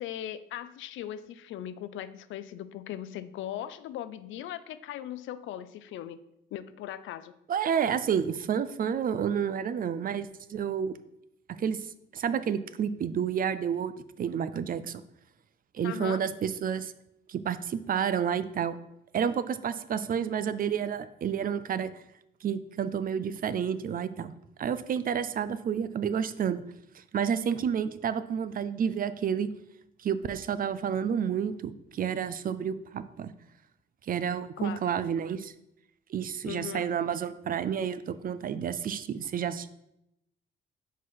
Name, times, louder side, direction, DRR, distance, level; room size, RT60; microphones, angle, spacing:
voice 1, 0.0-6.2 6.5-7.3 15.8-16.2 34.6-34.8 36.4-36.9, left 11 dB, 75° left, 14 dB, 0.4 m, -39 dB
voice 2, 7.5-10.9 11.6-11.9 12.1-15.0 15.7-16.9 17.3-18.8 19.1-21.9 22.4-24.3 24.6-26.6 26.9-29.5 30.0-33.3 34.1-35.5 36.1-39.7, right 8 dB, 45° right, 13 dB, 0.4 m, -30 dB
5.0 x 4.0 x 5.8 m, 0.82 s
cardioid pair, 90°, 20 cm